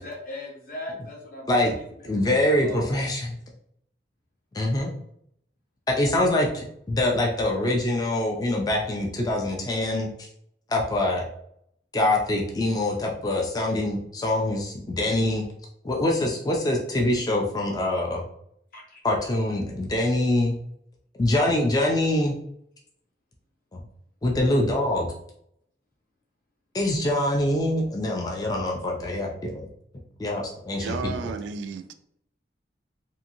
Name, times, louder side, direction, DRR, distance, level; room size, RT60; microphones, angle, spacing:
voice 1, 0.0-3.0 18.7-19.0, left 1 dB, 50° left, 0.8 m, -39 dB
voice 2, 2.0-3.3 4.5-4.9 5.9-10.3 10.7-11.3 11.9-15.5 15.8-18.2 19.0-20.6 21.2-22.3 23.7-23.8 24.2-25.1 26.7-29.7 30.2-31.1, left 1 dB, 20° left, 0.3 m, -24 dB
voice 3, 30.8-31.9, right 4 dB, 85° right, 0.3 m, -33 dB
2.7 x 2.5 x 2.6 m
head